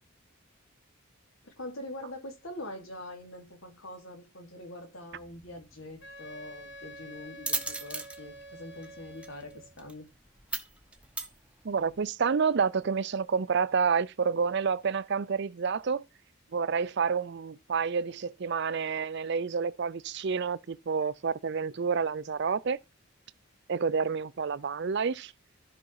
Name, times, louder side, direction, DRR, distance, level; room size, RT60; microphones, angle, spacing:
voice 1, 1.4-10.1, left 1 dB, 75° left, 3.0 m, -44 dB
sound 1, 5.1-12.0, right 3 dB, 5° right, 0.8 m, -40 dB
Wind instrument woodwind instrument, 6.0-9.7, right 1 dB, 55° left, 2.3 m, -48 dB
voice 2, 11.6-16.0 16.5-22.8 23.7-25.3, right 5 dB, 55° right, 0.5 m, -29 dB
13.0 x 5.1 x 4.7 m
head